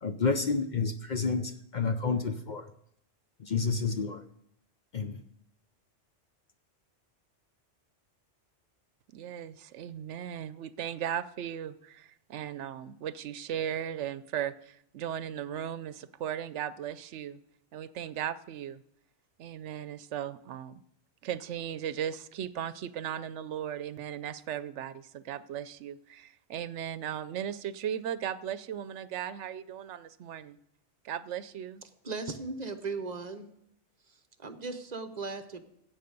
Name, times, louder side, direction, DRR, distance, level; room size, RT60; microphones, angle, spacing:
voice 1, 0.0-2.7 3.4-4.2 4.9-5.2, left 4 dB, 45° left, 8 dB, 0.7 m, -30 dB
voice 2, 9.1-17.4 17.7-18.8 19.4-20.8 21.2-30.6 31.0-31.8, right 10 dB, 80° right, 15 dB, 0.9 m, -37 dB
voice 3, 32.0-33.5 34.1-35.6, right 3 dB, 40° right, 9 dB, 1.0 m, -37 dB
16.5 x 7.6 x 5.3 m, 0.73 s
omnidirectional pair, 1.2 m